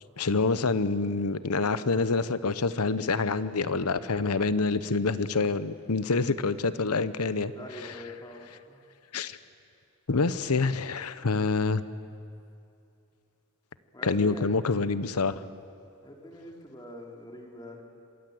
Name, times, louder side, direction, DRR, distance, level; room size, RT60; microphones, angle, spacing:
voice 1, 0.2-7.5 7.8-7.9 9.1-9.4 10.1-11.8 14.0-15.4, left 4 dB, 85° left, 14 dB, 0.9 m, -27 dB
voice 2, 7.6-8.8 13.9-14.5 16.0-17.8, left 1 dB, 20° left, 1 dB, 3.2 m, -44 dB
26.0 x 22.5 x 7.9 m, 2.6 s
head